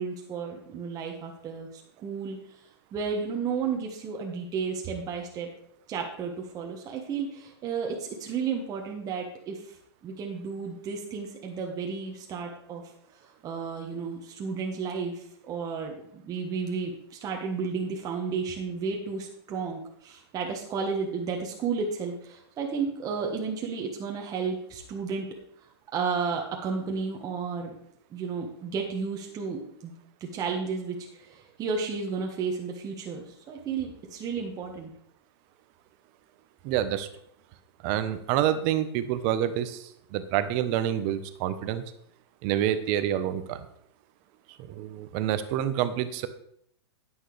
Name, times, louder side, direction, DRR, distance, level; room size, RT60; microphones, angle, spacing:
voice 1, 0.0-2.6 2.9-5.5 5.9-9.8 10.0-12.8 13.2-25.3 25.9-27.7 28.1-29.9 30.2-34.9, right 5 dB, 25° right, 0 dB, 1.4 m, -33 dB
voice 2, 36.6-37.1 37.8-41.8 42.4-43.7 44.7-46.3, right 11 dB, 45° right, 11 dB, 0.9 m, -27 dB
10.0 x 9.3 x 3.3 m, 0.68 s
hypercardioid pair, 130°, 14 cm